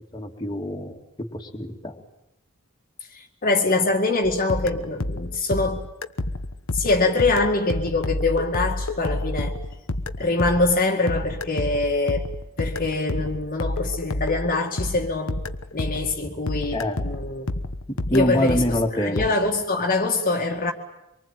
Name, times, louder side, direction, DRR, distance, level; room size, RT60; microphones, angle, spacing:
voice 1, 0.1-2.0 16.7-17.0 17.9-19.2, equal, 20° left, 2.6 m, -26 dB
voice 2, 3.1-5.9 6.7-9.6 10.2-12.3 12.6-15.4 15.7-17.5 18.1-20.7, left 2 dB, 40° left, 2.2 m, -24 dB
sound 1, 4.2-16.2 16.5-19.3, left 2 dB, 65° left, 1.2 m, -29 dB
25.5 x 24.0 x 9.2 m
head